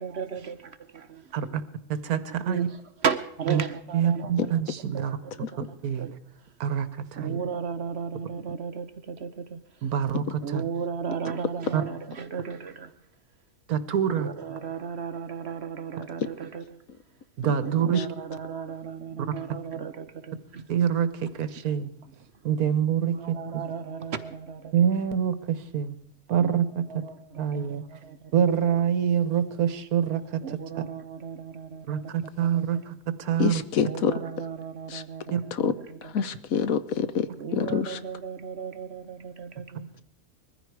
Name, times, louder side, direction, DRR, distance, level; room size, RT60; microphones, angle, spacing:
voice 1, 0.0-0.6 1.1-1.2 2.4-4.6 4.9-6.1 7.1-9.9 10.4-12.9 14.1-16.8 17.6-20.6 23.1-24.7 26.4-26.6 26.9-28.4 30.4-32.1 32.4-32.8 33.8-36.3 37.4-39.9, right 6 dB, 50° right, 0.9 m, -35 dB
voice 2, 1.9-2.7 3.5-3.6 3.9-5.2 5.8-6.1 6.6-7.4 9.8-10.6 11.7-11.8 13.7-14.3 17.4-18.0 20.7-21.9 22.4-23.6 24.7-26.0 26.3-26.8 27.4-27.8 28.3-30.8 31.9-32.9 33.2-33.6 35.3-35.4, right 8 dB, 75° right, 1.4 m, -26 dB
voice 3, 33.4-34.1 34.9-35.0 35.5-35.7 36.0-38.0, left 7 dB, 70° left, 1.2 m, -27 dB
21.0 x 14.5 x 4.7 m
omnidirectional pair, 1.6 m